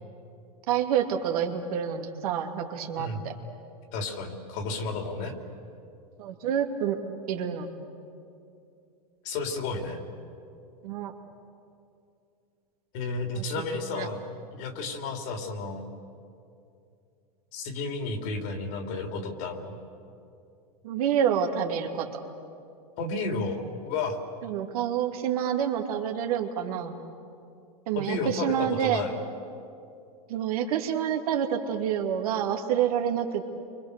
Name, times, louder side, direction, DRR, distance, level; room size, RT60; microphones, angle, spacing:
voice 1, 0.7-3.3 6.2-7.0 7.3-7.7 10.8-11.1 13.4-13.5 13.7-14.1 20.8-22.1 24.4-27.0 27.9-29.0 30.3-33.5, right 9 dB, 70° right, 3 dB, 2.5 m, -28 dB
voice 2, 3.9-5.4 9.2-10.0 12.9-14.2 14.5-15.9 17.5-19.8 23.0-24.2 27.9-29.1, left 3 dB, 55° left, 4 dB, 3.3 m, -32 dB
30.0 x 24.5 x 6.8 m, 2.6 s
supercardioid pair, 130°, 20 cm